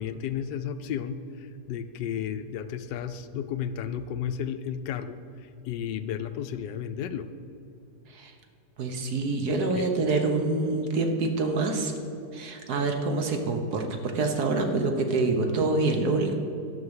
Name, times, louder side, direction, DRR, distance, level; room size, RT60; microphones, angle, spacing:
voice 1, 0.0-5.2 5.7-7.3 9.7-9.9, left 8 dB, 80° left, 11 dB, 1.2 m, -33 dB
voice 2, 8.8-11.9 12.3-16.3, right 3 dB, 65° right, 5 dB, 1.5 m, -26 dB
12.0 x 5.5 x 8.0 m, 2.6 s
omnidirectional pair, 1.9 m